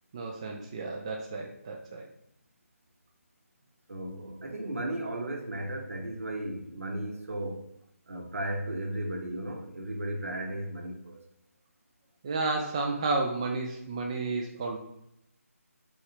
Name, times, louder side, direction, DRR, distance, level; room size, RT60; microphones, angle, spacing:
voice 1, 0.1-2.1 12.2-14.8, right 3 dB, 20° right, 0.3 m, -32 dB
voice 2, 3.9-7.7 8.1-11.2, right 1 dB, 65° right, 0.9 m, -35 dB
3.5 x 3.2 x 4.2 m
figure-of-eight pair, 155°, 8 cm